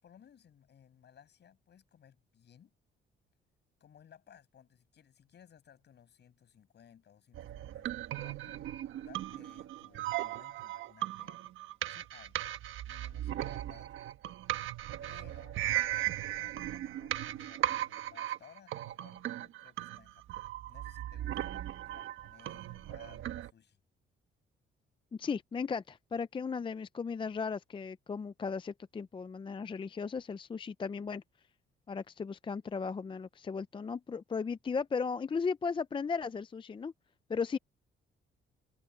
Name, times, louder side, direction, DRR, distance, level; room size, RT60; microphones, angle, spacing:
voice 1, 0.0-2.7 3.8-8.6 9.0-11.4 11.9-12.4 12.9-13.9 15.0-15.6 16.0-23.8, left 9 dB, 60° left, 7.5 m, -60 dB
sound 1, 7.3-23.5, right 13 dB, 80° right, 1.3 m, -37 dB
voice 2, 25.2-31.2 31.9-36.9 37.3-37.6, left 5 dB, 25° left, 0.5 m, -36 dB
cardioid pair, 90°, 20 cm